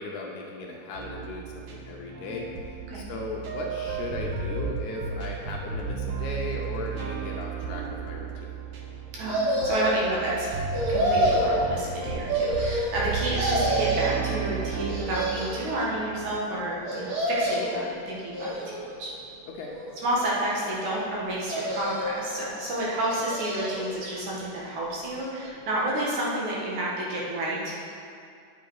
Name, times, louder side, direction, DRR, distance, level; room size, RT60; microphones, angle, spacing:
voice 1, 0.0-2.5 2.9-8.5 19.5-19.7, left 3 dB, 75° left, -1 dB, 2.0 m, -37 dB
sound 1, 0.9-16.4, right 6 dB, 85° right, 1.3 m, -34 dB
voice 2, 9.1-10.5 10.9-19.1 20.0-27.9, right 1 dB, 65° right, -5 dB, 2.8 m, -30 dB
sound 2, 9.3-10.1 10.7-11.6 12.3-13.1 13.4-14.2 14.8-15.7 16.9-17.8 18.3-19.0 19.6-20.4 21.4-22.3 23.0-23.9 24.3-24.4, right 1 dB, 50° right, 2.3 m, -28 dB
9.4 x 6.1 x 4.7 m, 2.4 s
omnidirectional pair, 3.8 m